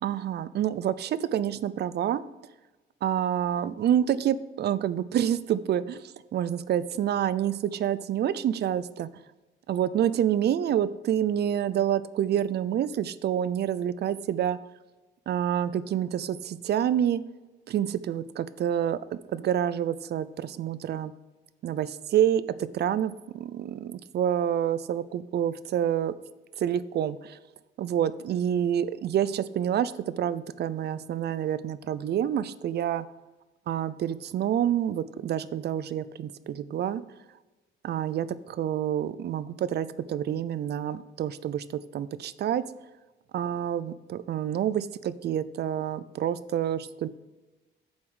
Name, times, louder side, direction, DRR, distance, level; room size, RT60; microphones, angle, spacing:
voice 1, 0.0-2.2 3.0-9.1 9.7-14.6 15.3-17.2 17.7-21.1 21.6-22.4 22.7-26.1 26.6-27.4 27.8-33.0 33.7-37.0 37.8-42.6 43.3-47.1, right 10 dB, 55° right, 15 dB, 0.5 m, -28 dB
7.2 x 4.7 x 6.3 m, 1.1 s
cardioid pair, 90°, 20 cm